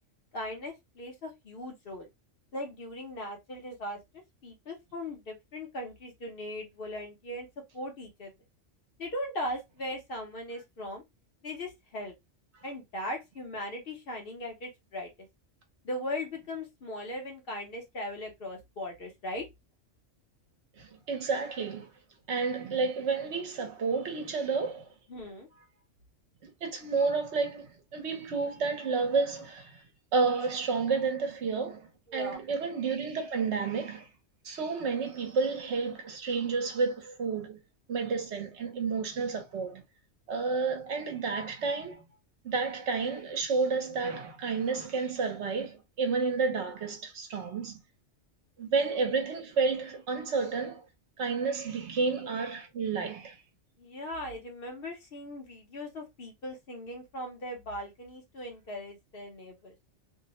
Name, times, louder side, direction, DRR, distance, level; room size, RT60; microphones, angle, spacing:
voice 1, 0.3-2.1 2.5-4.0 4.4-7.5 7.7-8.3 9.0-11.0 11.4-12.1 12.6-15.1 15.8-19.5 25.1-25.5 32.1-32.4 53.8-59.7, left 1 dB, 55° left, 0.8 m, -39 dB
voice 2, 20.8-21.9 22.3-24.9 26.4-29.8 30.1-34.1 34.4-37.6 37.9-39.8 40.3-42.0 42.4-47.8 48.6-50.9 51.2-53.4, right 4 dB, 65° right, 1.0 m, -30 dB
2.6 x 2.0 x 2.8 m
omnidirectional pair, 1.3 m